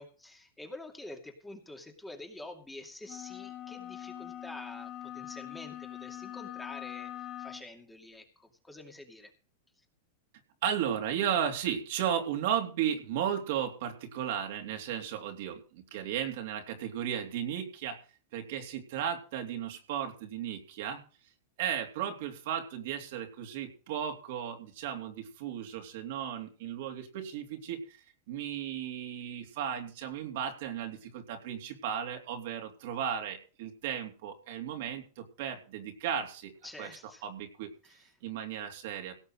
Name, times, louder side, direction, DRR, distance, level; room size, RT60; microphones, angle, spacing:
voice 1, 0.0-9.3 36.6-37.2 37.8-38.1, left 2 dB, 5° left, 3 dB, 2.5 m, -47 dB
sound 1, 3.0-7.7, left 12 dB, 30° left, 3.3 m, -43 dB
voice 2, 10.6-18.0 18.3-21.0 21.6-28.0 28.3-36.5 36.8-36.9 37.2-37.7 38.2-39.1, right 9 dB, 65° right, 4 dB, 3.3 m, -35 dB
17.5 x 6.6 x 6.4 m, 0.36 s
hypercardioid pair, 125°, 0 cm